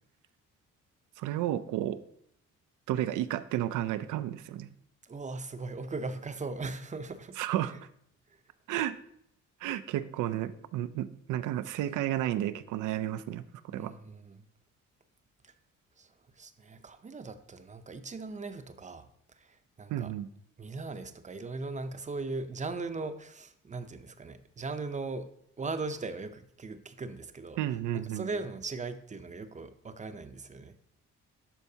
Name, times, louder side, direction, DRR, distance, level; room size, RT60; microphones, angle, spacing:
voice 1, 1.2-2.0 2.9-4.7 7.4-7.7 8.7-9.0 9.6-13.9 19.9-20.3 27.6-28.3, right 12 dB, 85° right, 14 dB, 0.5 m, -32 dB
voice 2, 5.0-7.4 13.7-14.5 15.4-15.5 16.0-19.1 19.3-20.1 20.6-25.3 25.6-27.6 27.9-30.8, right 3 dB, 25° right, 10 dB, 0.6 m, -39 dB
11.5 x 4.5 x 2.8 m, 0.70 s
cardioid pair, 90°, 30 cm